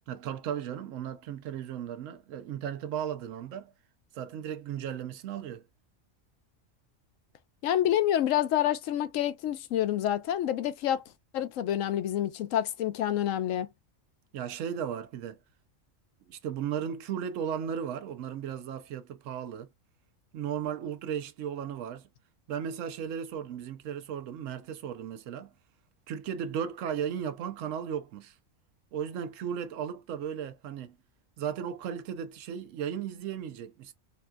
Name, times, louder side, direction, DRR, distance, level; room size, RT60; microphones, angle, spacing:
voice 1, 0.1-3.7 4.1-5.6 14.3-15.4 16.3-19.7 20.3-22.1 22.5-25.5 26.1-28.3 28.9-31.0 31.4-33.9, right 8 dB, 80° right, 0.9 m, -35 dB
voice 2, 7.6-11.0 11.3-13.7, left 11 dB, 80° left, 0.9 m, -28 dB
4.2 x 2.3 x 2.2 m
omnidirectional pair, 1.3 m